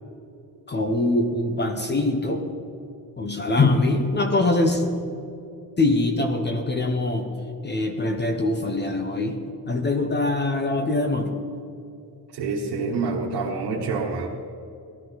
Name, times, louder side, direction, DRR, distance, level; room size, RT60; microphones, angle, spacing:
voice 1, 0.7-2.5 3.2-4.8 5.8-7.3 7.6-9.4 9.7-11.4, left 2 dB, 25° left, 5 dB, 0.9 m, -23 dB
voice 2, 12.3-14.3, right 4 dB, 85° right, -4 dB, 1.6 m, -27 dB
17.5 x 13.0 x 4.0 m, 2.7 s
wide cardioid pair, 160°, 39 cm